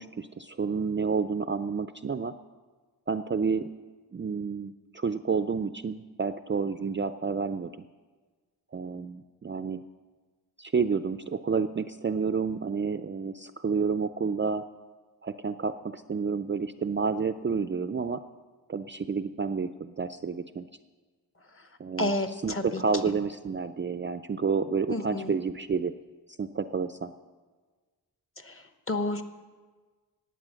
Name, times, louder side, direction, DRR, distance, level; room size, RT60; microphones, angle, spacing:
voice 1, 0.0-2.3 3.1-3.7 4.1-7.8 8.7-9.8 10.6-14.6 15.2-18.2 18.7-20.7 21.8-22.1 22.4-25.9 26.4-27.1, right 5 dB, 30° right, 10 dB, 0.4 m, -30 dB
voice 2, 22.0-22.8 24.9-25.3 28.4-28.6 28.9-29.2, left 2 dB, 30° left, 8 dB, 1.1 m, -30 dB
18.5 x 8.2 x 6.3 m, 1.4 s
wide cardioid pair, 115°, 41 cm